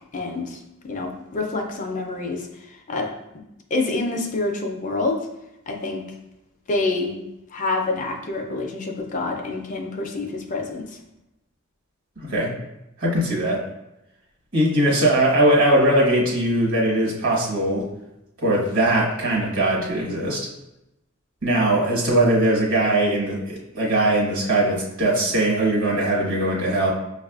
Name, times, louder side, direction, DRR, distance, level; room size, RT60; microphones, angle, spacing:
voice 1, 0.1-0.6 0.8-3.1 3.7-5.3 5.7-6.0 6.7-7.2 7.5-11.0, left 3 dB, 40° left, 3 dB, 0.4 m, -27 dB
voice 2, 12.2-12.5 13.0-13.6 14.5-17.9 18.4-20.5 21.4-26.9, right 1 dB, 70° right, -3 dB, 1.2 m, -20 dB
5.9 x 2.3 x 2.3 m, 0.88 s
head